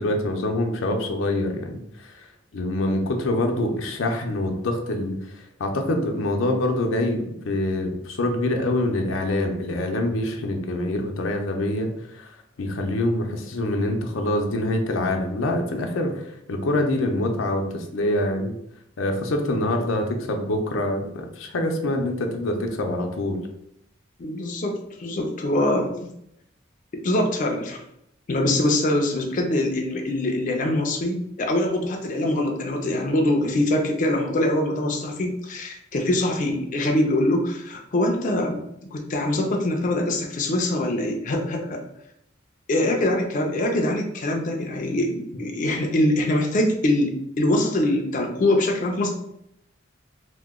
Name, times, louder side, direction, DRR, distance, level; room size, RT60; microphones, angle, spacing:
voice 1, 0.0-1.8 2.1-2.2 2.5-5.2 5.6-12.3 12.6-16.2 16.5-18.5 19.0-23.4, left 1 dB, 90° left, 3 dB, 0.5 m, -25 dB
voice 2, 24.2-25.9 27.0-27.8 28.3-41.8 42.7-49.1, left 1 dB, 40° left, 2 dB, 0.4 m, -23 dB
2.9 x 2.1 x 3.5 m, 0.76 s
head